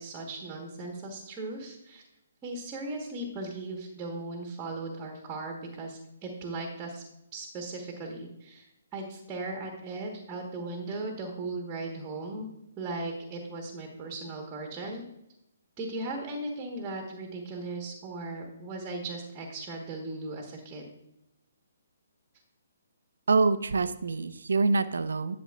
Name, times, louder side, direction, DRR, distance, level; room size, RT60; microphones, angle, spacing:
voice 1, 0.0-2.0 2.4-7.0 7.3-12.5 12.8-15.0 15.8-20.9, right 2 dB, 20° right, 1 dB, 1.4 m, -37 dB
voice 2, 23.3-25.4, right 3 dB, 70° right, 12 dB, 0.6 m, -25 dB
11.5 x 6.9 x 2.5 m, 0.86 s
figure-of-eight pair, 135°, 0 cm